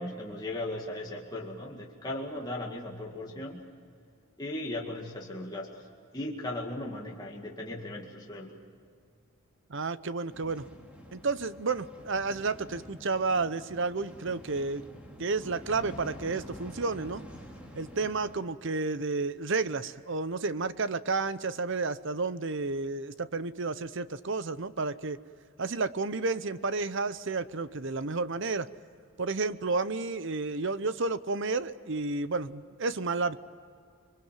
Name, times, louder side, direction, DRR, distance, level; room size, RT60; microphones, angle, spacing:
voice 1, 0.0-3.6 4.4-5.7 6.1-8.6, left 1 dB, 20° left, -2 dB, 2.1 m, -37 dB
voice 2, 9.7-10.7 11.1-14.9 15.2-17.2 17.8-25.2 25.6-28.7 29.2-33.4, right 3 dB, 55° right, 15 dB, 0.8 m, -31 dB
sound 1, 10.3-18.4, equal, 5° right, 2.8 m, -48 dB
25.5 x 23.5 x 7.5 m, 2.2 s
head